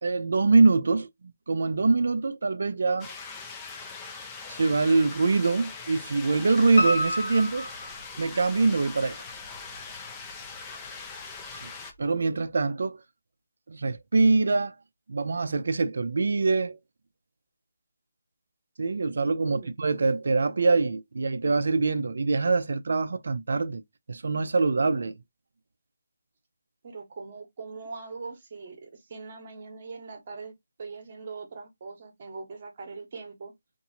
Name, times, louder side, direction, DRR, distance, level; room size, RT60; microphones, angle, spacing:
voice 1, 0.0-1.1 1.5-3.1 4.5-7.7 8.2-9.2 11.6-11.7 12.0-13.0 13.7-14.7 15.1-16.8 18.8-23.8 24.1-25.2, right 3 dB, 65° right, 0.4 m, -24 dB
sound 1, 3.0-11.9, left 4 dB, 15° left, 0.4 m, -41 dB
Piano, 6.8-8.7 9.1-10.0 10.3-10.4 10.9-11.0 11.2-11.3, equal, 70° left, 1.0 m, -30 dB
voice 2, 26.8-33.5, right 4 dB, 40° right, 0.9 m, -42 dB
2.7 x 2.6 x 2.7 m
figure-of-eight pair, 160°, 0 cm